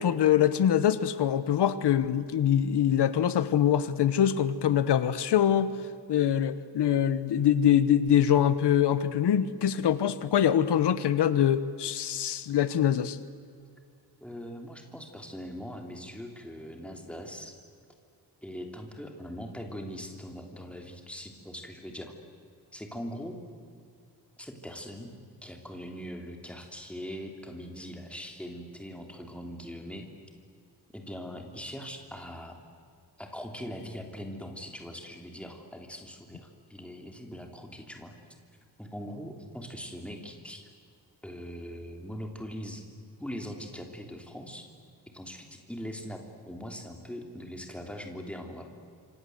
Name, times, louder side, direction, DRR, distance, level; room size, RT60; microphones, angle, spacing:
voice 1, 0.0-5.7 6.1-13.2, left 9 dB, 80° left, 14 dB, 1.1 m, -24 dB
voice 2, 14.2-17.5 18.4-22.1 22.7-23.4 24.4-25.1 25.4-30.1 30.9-32.5 33.2-38.1 38.8-40.7 41.2-42.8 43.2-44.7 45.1-48.7, equal, 5° left, 3 dB, 3.1 m, -41 dB
27.5 x 26.0 x 7.9 m, 2.3 s
wide cardioid pair, 170°, 40 cm